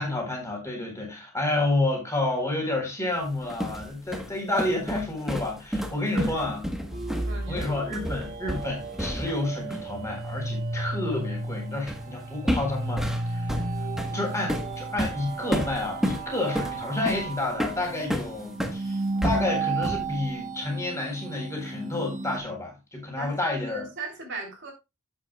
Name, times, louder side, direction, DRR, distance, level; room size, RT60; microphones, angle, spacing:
voice 1, 0.0-6.6 7.5-13.6 14.1-23.9, left 2 dB, 15° left, 4.1 m, -30 dB
sound 1, 3.2-9.5 9.7-9.9 11.9-12.1 12.5-18.8 19.2-20.1, equal, ahead, 1.2 m, -31 dB
sound 2, 6.9-22.4, right 3 dB, 35° right, 1.5 m, -33 dB
voice 2, 7.2-7.8 14.1-14.7 23.2-24.7, right 1 dB, 60° right, 3.1 m, -38 dB
12.0 x 8.3 x 2.3 m
head